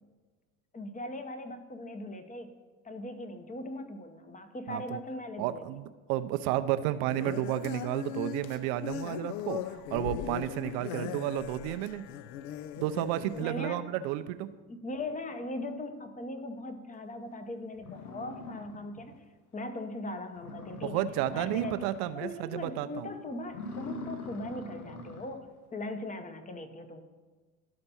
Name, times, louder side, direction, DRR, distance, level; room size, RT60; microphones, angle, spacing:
voice 1, 0.7-2.5 2.8-5.7 11.0-11.2 13.4-13.9 14.7-19.1 19.5-21.9 22.1-27.0, left 2 dB, 20° left, 8 dB, 0.9 m, -39 dB
voice 2, 4.7-5.0 5.4-9.6 9.9-12.0 12.8-14.5 20.8-23.1, right 13 dB, 55° right, 12 dB, 0.6 m, -32 dB
sound 1, 7.1-13.5, left 10 dB, 45° left, 0.4 m, -39 dB
sound 2, 17.3-17.4 17.8-19.2 19.6-19.7 20.0-20.1 20.4-22.3 22.6-22.9 23.4-25.4, left 2 dB, 80° left, 0.9 m, -43 dB
12.5 x 4.3 x 4.2 m, 1.3 s
hypercardioid pair, 70°, 43 cm